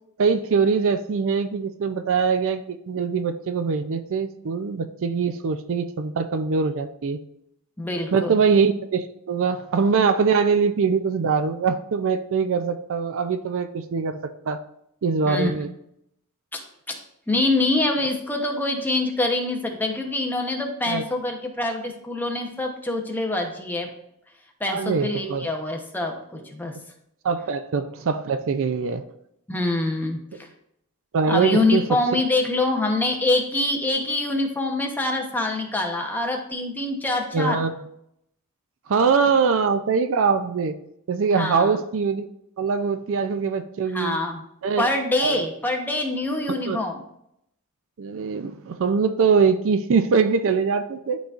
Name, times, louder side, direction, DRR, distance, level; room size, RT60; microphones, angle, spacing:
voice 1, 0.2-7.2 8.1-14.6 15.0-15.7 20.9-21.0 24.7-25.5 27.2-29.0 31.1-31.8 37.3-37.7 38.9-40.8 41.1-42.3 42.6-44.2 44.6-44.9 45.2-45.4 46.7-46.8 48.0-51.2, right 5 dB, 60° right, 10 dB, 0.4 m, -23 dB
voice 2, 7.8-8.4 15.3-15.5 16.5-16.6 16.9-17.0 17.3-23.9 24.6-26.7 29.5-30.5 31.3-37.6 41.3-41.8 43.9-44.4 44.8-47.0, left 2 dB, 10° left, 2 dB, 0.9 m, -25 dB
11.5 x 3.9 x 2.5 m, 0.76 s
head